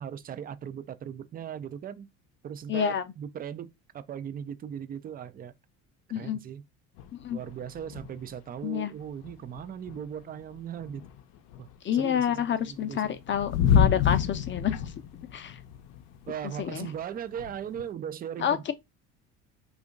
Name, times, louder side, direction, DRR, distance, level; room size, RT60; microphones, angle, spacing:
voice 1, 0.0-2.1 2.4-5.5 6.1-6.6 7.3-11.0 11.6-13.2 16.3-18.7, right 9 dB, 25° right, 0.4 m, -38 dB
voice 2, 2.7-3.0 6.1-6.4 7.2-7.4 8.6-8.9 11.8-14.9 15.3-15.6 16.6-16.9 18.4-18.7, left 9 dB, 35° left, 0.6 m, -28 dB
sound 1, 7.0-8.3 8.6-8.7 9.0-11.8 12.4-17.9, left 8 dB, 75° left, 0.6 m, -29 dB
2.7 x 2.5 x 3.7 m
hypercardioid pair, 75°, 36 cm